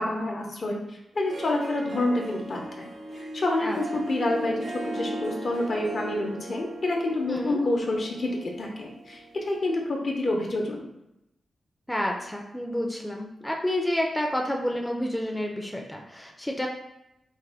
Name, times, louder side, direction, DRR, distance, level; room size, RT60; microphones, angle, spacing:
voice 1, 0.0-2.9 3.2-10.9, left 2 dB, 55° left, 0 dB, 0.7 m, -28 dB
Harp, 1.1-9.7, right 1 dB, 60° right, 0.6 m, -38 dB
voice 2, 3.6-4.0 7.3-7.6 11.9-16.7, left 1 dB, 10° left, 0 dB, 0.4 m, -29 dB
3.4 x 2.1 x 3.4 m, 0.86 s
cardioid pair, 90°, 0 cm